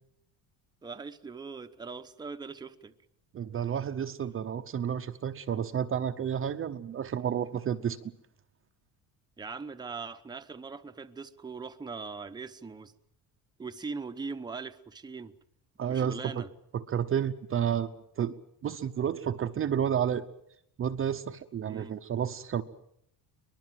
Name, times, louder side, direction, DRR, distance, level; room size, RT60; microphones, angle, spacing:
voice 1, 0.8-2.9 9.4-12.9 13.6-15.3 15.9-16.5 21.6-21.9, right 4 dB, 10° right, 7 dB, 0.9 m, -40 dB
voice 2, 3.3-8.1 15.8-16.2 16.7-17.9 18.2-18.3 18.6-20.3 20.8-22.6, right 8 dB, 30° right, 8 dB, 0.8 m, -31 dB
23.5 x 21.0 x 7.7 m, 0.74 s
cardioid pair, 165°, 40 cm